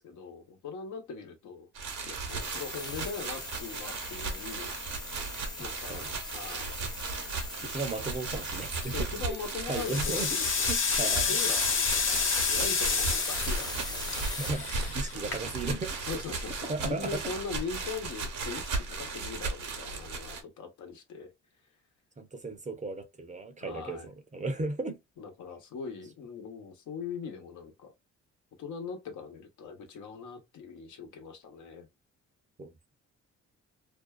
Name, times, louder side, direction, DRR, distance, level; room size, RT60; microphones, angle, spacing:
voice 1, 0.0-1.7 2.1-4.7 5.6-6.0 6.3-6.7 8.8-10.7 11.3-14.3 15.1-15.4 16.0-21.3 23.6-24.1 25.2-27.9 28.6-31.9, left 5 dB, 75° left, 1.0 m, -41 dB
sound 1, 1.8-20.4, right 4 dB, 65° right, 1.0 m, -36 dB
sound 2, 2.3-14.5, left 3 dB, 15° left, 0.8 m, -42 dB
voice 2, 7.6-8.9 9.3-9.4 9.7-10.4 10.7-11.4 14.4-16.0 16.7-17.2 22.2-25.0 32.6-32.7, right 2 dB, 25° right, 0.7 m, -35 dB
sound 3, 8.6-9.0 9.5-15.8, left 5 dB, 45° left, 0.7 m, -30 dB
2.5 x 2.2 x 2.2 m
cardioid pair, 90°, 30 cm